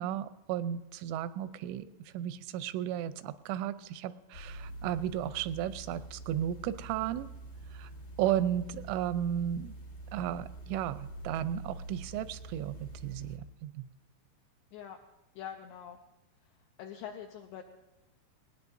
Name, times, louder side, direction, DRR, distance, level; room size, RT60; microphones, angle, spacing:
voice 1, 0.0-1.9 2.1-7.3 7.7-7.9 8.2-9.8 10.1-13.8, right 11 dB, 85° right, 13 dB, 3.0 m, -34 dB
sound 1, 4.3-13.4, right 2 dB, 65° left, 1.2 m, -46 dB
voice 2, 15.4-16.0 16.8-17.6, left 9 dB, 90° left, 4 dB, 2.3 m, -43 dB
19.0 x 18.5 x 2.6 m, 1.0 s
omnidirectional pair, 5.4 m